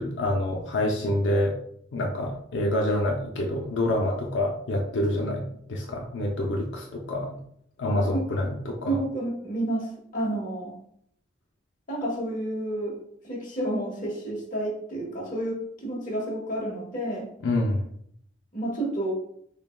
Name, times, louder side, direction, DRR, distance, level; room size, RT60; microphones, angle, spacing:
voice 1, 0.0-1.5 1.9-7.4 7.8-9.0 17.4-17.8, left 1 dB, 85° left, 0 dB, 0.5 m, -27 dB
voice 2, 8.9-10.7 11.9-13.0 13.2-17.3 18.5-19.1, right 1 dB, 45° left, -3 dB, 1.3 m, -30 dB
6.4 x 2.2 x 2.2 m, 0.68 s
head